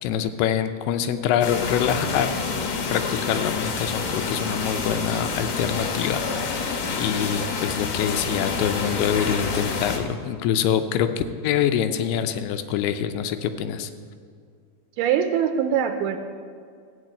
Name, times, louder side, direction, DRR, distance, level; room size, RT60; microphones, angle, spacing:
voice 1, 0.0-2.4 2.9-13.9, left 9 dB, 80° left, 9 dB, 2.6 m, -25 dB
sound 1, 1.4-10.0, left 4 dB, 65° left, 1.9 m, -28 dB
voice 2, 15.0-16.2, right 8 dB, 80° right, 7 dB, 2.4 m, -22 dB
14.0 x 5.2 x 8.7 m, 2.2 s
omnidirectional pair, 4.7 m